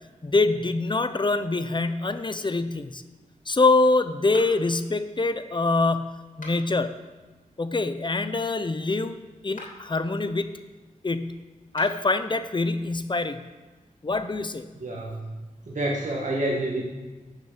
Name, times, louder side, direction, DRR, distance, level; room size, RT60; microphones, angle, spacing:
voice 1, 0.2-3.0 3.5-7.0 7.6-10.5 11.0-11.4 11.7-13.4 14.0-14.7, left 3 dB, 35° left, 10 dB, 0.7 m, -25 dB
sound 1, 4.3-4.8 6.3-6.9 9.4-9.9 11.6-12.1, left 2 dB, 75° left, 3.0 m, -44 dB
voice 2, 14.7-15.4 15.7-16.9, right 1 dB, 65° right, -3 dB, 1.8 m, -28 dB
12.0 x 6.4 x 7.4 m, 1.3 s
wide cardioid pair, 90°, 14 cm